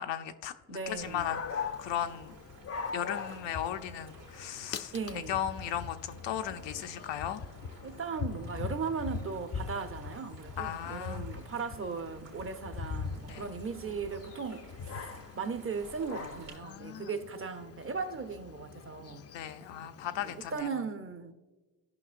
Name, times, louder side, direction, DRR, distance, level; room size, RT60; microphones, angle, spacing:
voice 1, 0.0-2.3 2.9-7.4 10.6-11.2 13.3-13.5 16.6-17.1 19.3-20.7, left 10 dB, 70° left, 0.7 m, -36 dB
voice 2, 0.7-1.4 4.9-5.4 7.8-19.3 20.2-21.3, right 5 dB, 30° right, 0.7 m, -38 dB
sound 1, 0.8-16.6, right 5 dB, 70° right, 1.7 m, -56 dB
Dog, 1.0-20.6, left 5 dB, 35° left, 0.5 m, -42 dB
14.0 x 5.5 x 2.5 m
supercardioid pair, 55°, 45 cm